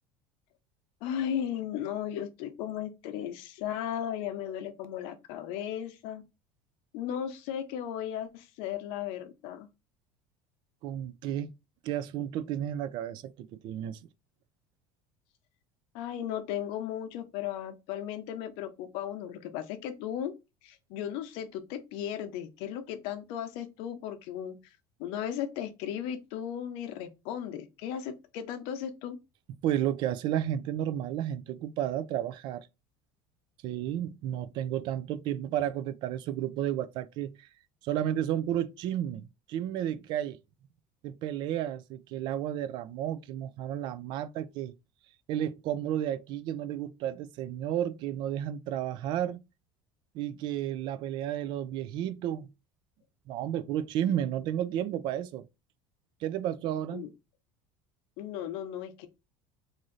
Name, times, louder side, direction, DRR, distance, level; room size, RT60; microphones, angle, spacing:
voice 1, 1.0-6.2 6.9-9.7 15.9-20.3 20.6-24.6 25.0-29.2 56.9-57.1 58.2-59.1, left 10 dB, 65° left, 0.7 m, -36 dB
voice 2, 10.8-11.5 11.8-14.0 29.6-32.7 33.6-37.5 37.8-40.4 41.0-44.7 45.3-49.4 50.1-52.5 53.3-55.4 56.2-57.1, right 11 dB, 50° right, 0.4 m, -32 dB
3.1 x 2.6 x 3.8 m
cardioid pair, 160°, 10 cm